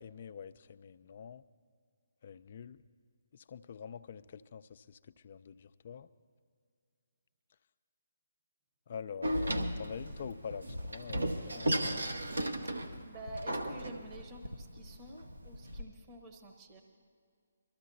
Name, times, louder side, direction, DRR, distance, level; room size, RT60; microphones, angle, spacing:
voice 1, 0.0-1.4 2.2-2.8 3.5-5.0 5.2-6.1 8.9-12.0, left 7 dB, 45° left, 12 dB, 0.4 m, -46 dB
Door, 9.2-15.8, right 1 dB, 80° right, 0.9 m, -35 dB
voice 2, 13.0-16.8, right 1 dB, 25° right, 2 dB, 0.9 m, -49 dB
23.0 x 13.5 x 2.7 m, 2.2 s
figure-of-eight pair, 140°, 0 cm